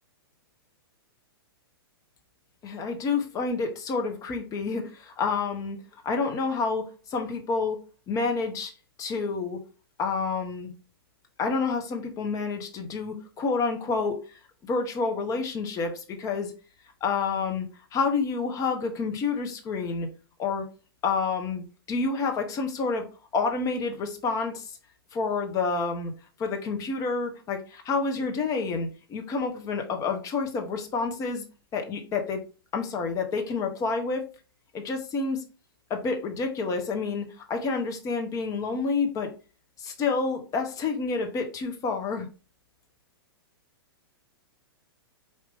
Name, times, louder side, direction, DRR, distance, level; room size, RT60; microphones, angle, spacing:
voice 1, 2.6-5.8 6.0-6.8 7.1-7.8 8.1-8.7 9.0-9.6 10.0-10.7 11.4-14.2 14.6-16.5 17.0-20.1 20.4-20.6 21.0-23.1 23.3-24.8 25.1-26.1 26.4-31.4 31.7-32.4 32.7-34.2 34.7-35.4 35.9-39.3 39.8-42.3, left 4 dB, 25° left, 4 dB, 1.0 m, -28 dB
4.8 x 2.9 x 3.5 m, 0.34 s
hypercardioid pair, 115°, 13 cm